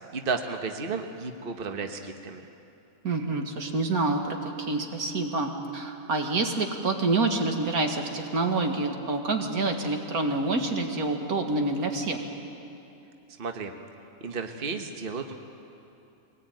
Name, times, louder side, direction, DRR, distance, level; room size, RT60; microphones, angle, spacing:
voice 1, 0.1-2.5 13.4-13.7 14.2-15.3, right 4 dB, 40° right, 5 dB, 1.3 m, -33 dB
voice 2, 3.0-12.2, right 3 dB, 80° right, 3 dB, 2.3 m, -27 dB
23.0 x 19.0 x 9.1 m, 2.8 s
omnidirectional pair, 1.5 m